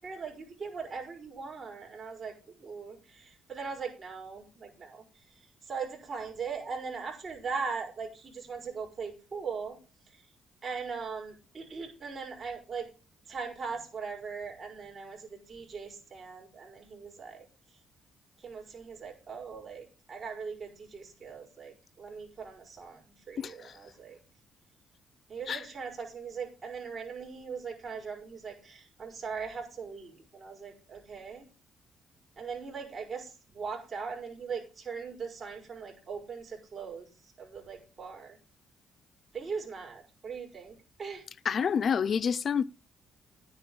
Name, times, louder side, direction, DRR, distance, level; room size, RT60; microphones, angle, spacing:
voice 1, 0.0-2.3 2.6-5.0 5.7-9.8 10.6-12.9 13.3-17.4 18.4-24.2 25.3-31.5 32.4-37.1 37.4-38.4 39.3-41.2, right 5 dB, 40° right, 5.7 m, -40 dB
voice 2, 23.4-23.7 25.5-25.7 41.4-42.6, left 7 dB, 50° left, 0.6 m, -28 dB
11.5 x 9.6 x 4.9 m
cardioid pair, 90°, 0 cm